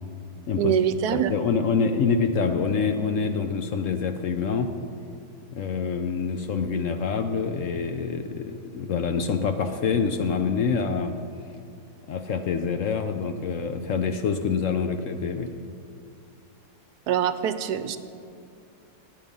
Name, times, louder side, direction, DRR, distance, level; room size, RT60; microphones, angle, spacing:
voice 1, 0.6-1.4 17.1-18.0, right 9 dB, 75° right, 12 dB, 1.1 m, -24 dB
voice 2, 1.1-4.7 5.5-11.2 12.1-15.6, left 5 dB, 60° left, 7 dB, 0.9 m, -26 dB
19.0 x 7.7 x 5.4 m, 2.4 s
omnidirectional pair, 1.8 m